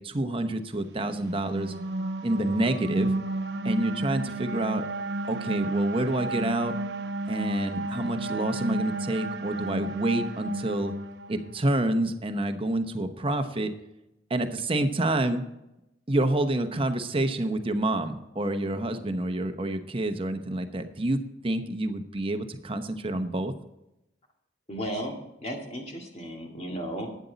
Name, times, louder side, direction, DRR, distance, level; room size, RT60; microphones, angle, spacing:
voice 1, 0.0-1.7 2.2-3.1 3.6-4.8 5.2-6.8 7.3-10.9 11.3-13.7 14.3-15.5 16.1-23.5, right 1 dB, 30° right, 8 dB, 0.9 m, -28 dB
sound 1, 1.1-11.6, right 2 dB, 65° right, 0.9 m, -32 dB
voice 2, 24.7-27.2, equal, 35° left, 1 dB, 2.2 m, -35 dB
12.0 x 9.3 x 4.0 m, 0.90 s
head